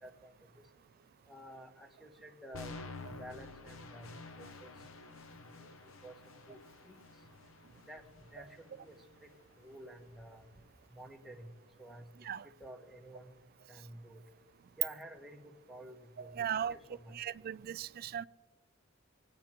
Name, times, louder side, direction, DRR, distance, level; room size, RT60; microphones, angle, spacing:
voice 1, 0.0-0.5 1.3-2.8 3.1-4.7 5.6-5.7 6.0-6.6 6.8-7.0 7.9-8.0 8.3-9.3 9.6-10.4 10.9-11.5 11.8-12.1 12.4-13.4 13.7-14.2 14.8-17.1, right 1 dB, ahead, 1.2 m, -51 dB
sound 1, 2.5-10.6, left 3 dB, 75° left, 0.7 m, -51 dB
voice 2, 16.4-16.7 17.2-18.2, right 9 dB, 50° right, 0.3 m, -37 dB
24.5 x 9.5 x 3.0 m
head